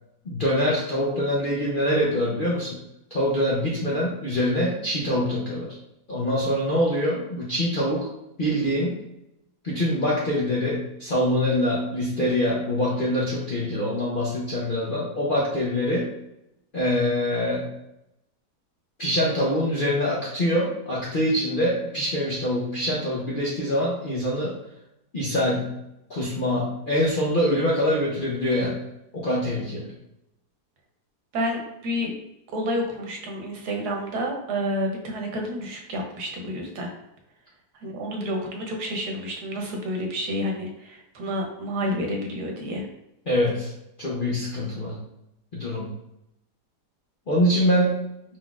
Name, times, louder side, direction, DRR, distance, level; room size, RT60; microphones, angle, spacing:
voice 1, 0.2-2.8 3.1-5.7 6.1-8.1 8.4-9.0 9.6-16.1 16.7-17.7 19.0-24.6 25.1-25.8 26.1-28.8 29.1-29.9 43.3-43.7 44.0-45.0 45.5-45.9 47.3-48.0, equal, 45° left, -6 dB, 0.7 m, -24 dB
voice 2, 31.3-32.1 32.5-36.9 37.8-42.9, equal, 70° right, 2 dB, 1.3 m, -29 dB
4.7 x 3.9 x 2.4 m, 0.84 s
omnidirectional pair, 1.8 m